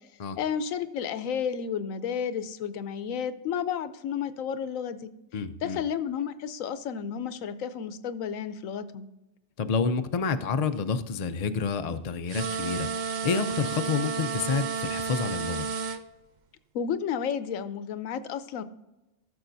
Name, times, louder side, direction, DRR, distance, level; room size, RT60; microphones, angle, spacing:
voice 1, 0.4-5.1 5.6-9.1 16.7-18.6, left 7 dB, 80° left, 1.0 m, -32 dB
voice 2, 5.3-5.8 9.6-12.9 13.2-15.7, left 5 dB, 50° left, 0.4 m, -29 dB
sound 1, 12.3-16.0, right 5 dB, 60° right, 0.5 m, -31 dB
15.5 x 6.8 x 2.6 m
omnidirectional pair, 1.4 m